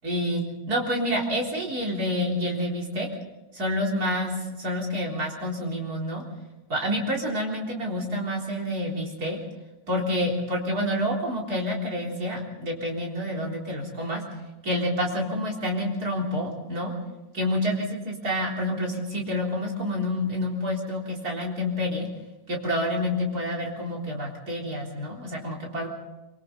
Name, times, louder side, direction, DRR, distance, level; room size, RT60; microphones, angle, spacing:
voice 1, 0.0-3.1 3.5-6.2 6.7-9.4 9.9-14.2 14.6-16.9 17.3-22.1 22.5-25.9, left 1 dB, 25° right, -2 dB, 4.0 m, -28 dB
26.0 x 25.0 x 4.1 m, 1.0 s
omnidirectional pair, 4.3 m